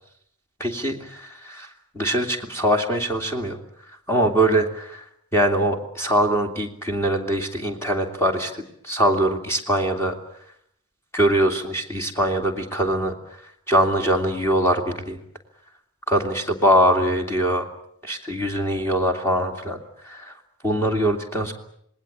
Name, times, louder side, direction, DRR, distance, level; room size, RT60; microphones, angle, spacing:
voice 1, 0.6-1.7 1.9-3.6 4.1-5.0 5.3-10.2 11.1-13.1 13.7-15.2 16.1-17.7 18.0-19.8 20.0-20.3 20.6-21.5, right 1 dB, 10° left, 2 dB, 2.7 m, -22 dB
27.0 x 19.5 x 8.8 m, 0.72 s
head